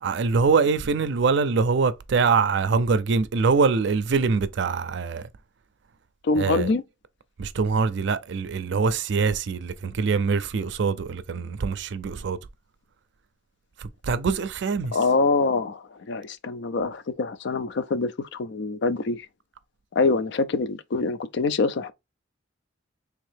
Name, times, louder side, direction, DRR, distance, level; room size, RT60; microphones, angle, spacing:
voice 1, 0.0-5.3 6.4-6.7 7.4-12.4 13.8-15.0, right 5 dB, 65° right, 0.4 m, -24 dB
voice 2, 6.2-6.8 14.9-19.3 19.9-21.9, left 3 dB, 65° left, 0.4 m, -25 dB
3.5 x 2.7 x 3.3 m
head